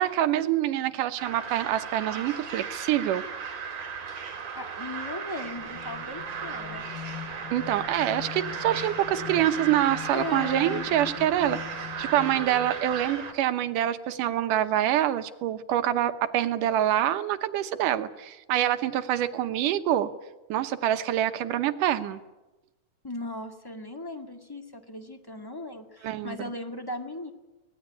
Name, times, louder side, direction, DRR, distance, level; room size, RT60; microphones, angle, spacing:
voice 1, 0.0-3.2 7.5-11.6 12.0-20.1 20.5-22.2 26.0-26.5, right 12 dB, 90° right, 10 dB, 2.6 m, -26 dB
sound 1, 1.2-13.3, right 6 dB, 55° right, 3.7 m, -36 dB
voice 2, 4.5-6.9 10.1-10.9 23.0-27.3, left 1 dB, 10° left, 5 dB, 1.1 m, -37 dB
sound 2, 5.4-13.1, left 11 dB, 90° left, 2.9 m, -42 dB
24.0 x 19.0 x 9.8 m, 1.1 s
omnidirectional pair, 3.6 m